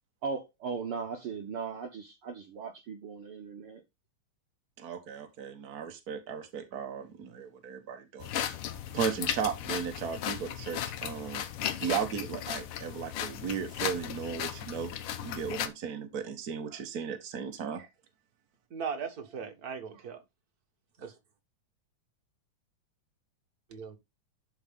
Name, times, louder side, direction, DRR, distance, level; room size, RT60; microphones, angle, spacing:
voice 1, 0.2-3.8, right 5 dB, 65° right, 1.4 m, -38 dB
voice 2, 4.8-8.6 8.9-11.4 11.8-14.9 15.2-17.9, right 7 dB, 85° right, 0.8 m, -36 dB
sound 1, 8.2-15.7, left 10 dB, 85° left, 1.2 m, -36 dB
voice 3, 18.7-20.2 21.0-21.1 23.7-24.0, right 6 dB, 40° right, 1.5 m, -38 dB
11.0 x 4.8 x 3.5 m
omnidirectional pair, 3.6 m